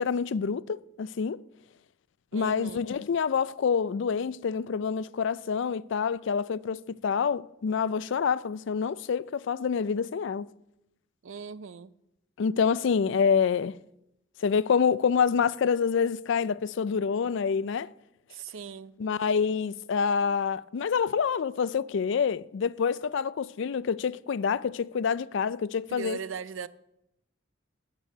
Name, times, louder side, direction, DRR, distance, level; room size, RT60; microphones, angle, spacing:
voice 1, 0.0-1.4 2.3-10.5 12.4-13.8 14.4-17.9 19.0-26.2, left 6 dB, 65° left, 0.4 m, -27 dB
voice 2, 2.3-2.9 11.2-11.9 18.3-18.9 25.9-26.7, right 6 dB, 80° right, 0.5 m, -39 dB
9.0 x 8.3 x 7.9 m
head